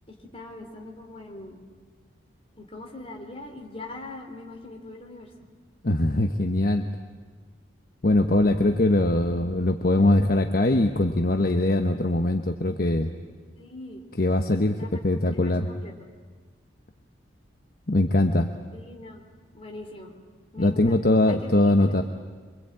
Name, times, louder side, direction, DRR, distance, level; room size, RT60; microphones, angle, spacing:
voice 1, 0.1-1.6 2.5-5.3 13.6-14.0 14.7-15.9 18.7-19.2 19.5-20.1 20.5-21.0 21.3-22.0, left 2 dB, 30° left, 2 dB, 3.4 m, -42 dB
voice 2, 5.8-6.8 8.0-13.1 14.2-15.7 17.9-18.5 20.6-22.0, left 1 dB, 50° left, 6 dB, 1.0 m, -22 dB
26.5 x 24.0 x 8.8 m, 1.5 s
head